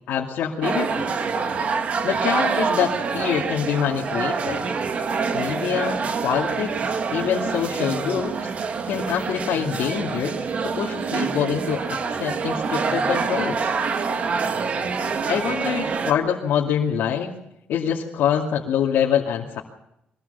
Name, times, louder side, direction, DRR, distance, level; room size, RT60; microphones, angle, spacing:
voice 1, 0.1-1.2 2.0-4.7 5.3-8.5 8.9-10.3 10.6-13.7 15.3-17.3 17.7-19.6, left 8 dB, 85° left, -3 dB, 2.6 m, -25 dB
sound 1, 0.6-16.1, right 5 dB, 45° right, 1.9 m, -26 dB
23.5 x 19.0 x 6.9 m, 0.85 s
cardioid pair, 150°, 3 cm